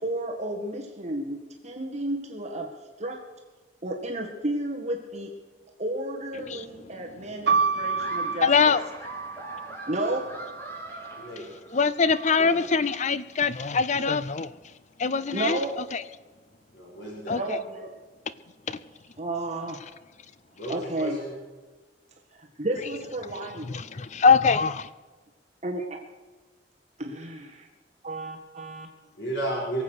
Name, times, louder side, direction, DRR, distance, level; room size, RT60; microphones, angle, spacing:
voice 1, 0.0-2.7 3.0-3.2 3.8-5.3 5.8-8.8 9.9-10.3 15.3-15.8 17.4-17.9 19.2-19.8 20.7-21.2 22.6-23.7 25.6-26.0 27.0-27.7 28.0-28.9, right 1 dB, 40° right, 1 dB, 1.8 m, -32 dB
sound 1, 7.5-11.3 12.1-12.8, right 4 dB, 65° right, 1.0 m, -30 dB
Laughter, 8.0-12.0, right 1 dB, 15° left, 3.4 m, -42 dB
voice 2, 8.4-8.8 11.7-14.5 15.0-15.6 15.9-16.0 17.3-17.6 18.7-18.8 23.7-24.9, left 5 dB, 40° left, 15 dB, 0.6 m, -23 dB
voice 3, 16.7-17.4 20.6-21.3 29.0-29.8, right 1 dB, 80° left, -3 dB, 4.9 m, -33 dB
23.0 x 8.1 x 6.5 m, 1.3 s
head